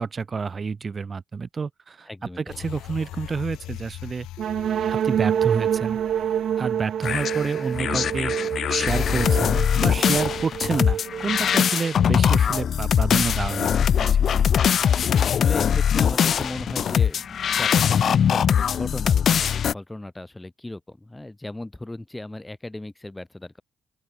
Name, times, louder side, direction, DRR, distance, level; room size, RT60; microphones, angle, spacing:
voice 1, 0.0-2.1 2.4-4.3 4.9-6.0 6.6-8.3 8.7-14.5, right 5 dB, 35° right, 1.8 m, -29 dB
voice 2, 2.1-2.6 15.2-23.6, left 1 dB, 10° left, 2.4 m, -36 dB
sound 1, 2.5-8.1 8.5-8.6, left 15 dB, 90° left, 2.0 m, -41 dB
sound 2, 4.4-12.1, right 9 dB, 65° right, 0.6 m, -27 dB
sound 3, 7.0-19.7, left 8 dB, 60° left, 0.4 m, -21 dB
open air
cardioid pair, 90°, 0 cm